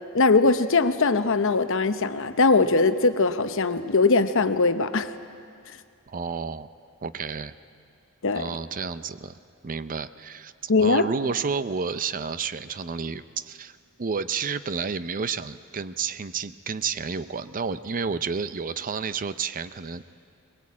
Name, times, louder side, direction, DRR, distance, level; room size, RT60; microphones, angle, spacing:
voice 1, 0.1-5.1 8.2-8.4 10.7-11.1, left 3 dB, 60° left, 10 dB, 0.9 m, -21 dB
voice 2, 6.1-6.7 7.0-7.5 8.3-9.3 9.6-20.1, right 5 dB, 40° right, 13 dB, 0.5 m, -31 dB
21.5 x 21.5 x 8.5 m, 2.3 s
head